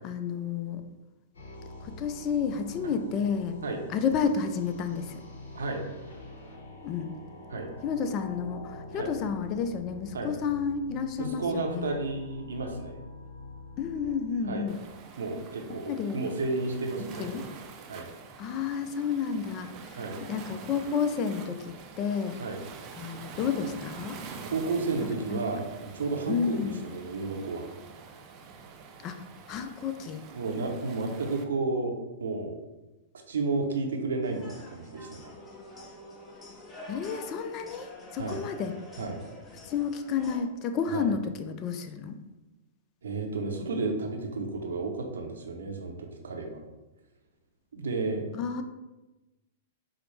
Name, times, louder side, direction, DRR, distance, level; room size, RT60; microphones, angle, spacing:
voice 1, 0.0-0.8 1.8-3.6 3.9-5.2 6.8-7.2 7.8-12.0 13.8-14.8 15.7-16.2 17.2-17.4 18.4-20.0 20.3-22.4 23.0-24.2 25.0-25.4 26.3-26.8 29.0-30.3 36.9-38.7 39.6-42.2 48.3-48.6, left 6 dB, 35° left, 7 dB, 0.4 m, -31 dB
sound 1, 1.3-15.4, left 2 dB, 75° left, 0.8 m, -45 dB
voice 2, 11.2-13.0 14.5-14.7 15.2-17.3 17.9-18.1 19.9-20.2 22.4-22.6 24.5-27.7 30.3-32.6 33.3-35.4 38.2-38.4 39.0-39.2 40.9-41.1 43.0-46.6 47.7-48.2, right 3 dB, 80° right, 2 dB, 0.6 m, -32 dB
Waves surf, 14.7-31.4, right 5 dB, 40° right, 0.4 m, -46 dB
sound 2, 34.2-40.4, left 1 dB, 15° left, 0.7 m, -47 dB
4.7 x 2.0 x 3.1 m, 1.1 s
hypercardioid pair, 115°, 0 cm